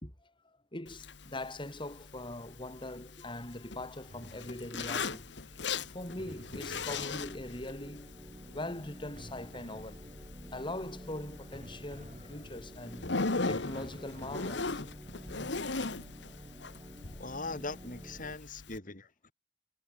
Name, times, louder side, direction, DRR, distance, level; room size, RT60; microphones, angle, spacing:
voice 1, 0.0-5.3 5.9-8.1 8.5-10.0 10.5-14.8 15.3-15.4, left 1 dB, 25° left, 3.7 m, -42 dB
Zipper (clothing), 0.9-18.8, left 3 dB, 70° left, 1.6 m, -40 dB
sound 1, 4.1-5.1 6.2-7.8 9.2-10.6 11.5-13.0 13.7-15.1, equal, 40° right, 7.1 m, -53 dB
sound 2, 4.8-18.4, equal, 20° right, 3.5 m, -51 dB
voice 2, 17.2-19.3, left 3 dB, 45° left, 4.5 m, -41 dB
head